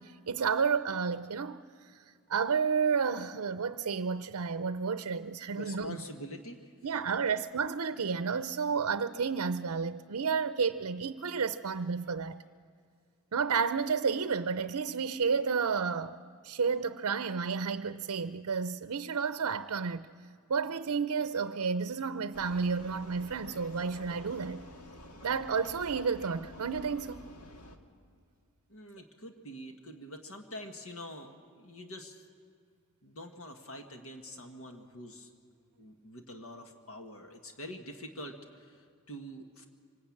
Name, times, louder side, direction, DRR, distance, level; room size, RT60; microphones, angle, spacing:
voice 1, 0.0-6.0 6.8-12.4 13.3-16.2 16.4-20.1 20.5-24.6 25.2-27.3, right 5 dB, 75° right, 0.6 m, -31 dB
voice 2, 5.5-7.0 7.2-7.3 28.7-32.2 33.0-35.3 35.8-39.6, equal, 65° left, 1.6 m, -46 dB
Vehicle, 22.3-27.8, left 1 dB, 85° left, 1.8 m, -49 dB
25.0 x 19.5 x 8.6 m
head